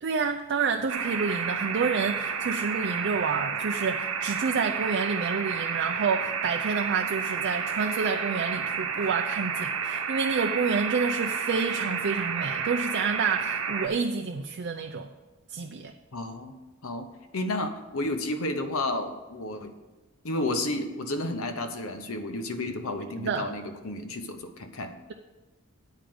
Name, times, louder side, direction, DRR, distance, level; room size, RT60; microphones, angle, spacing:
voice 1, 0.0-15.1 15.5-15.9 23.2-23.5, right 5 dB, 50° right, 4 dB, 0.5 m, -29 dB
sound 1, 0.9-13.9, right 6 dB, 75° right, 1.0 m, -30 dB
voice 2, 16.1-19.7 20.2-25.0, left 2 dB, 65° left, 7 dB, 0.9 m, -32 dB
9.2 x 5.0 x 7.7 m, 1.2 s
head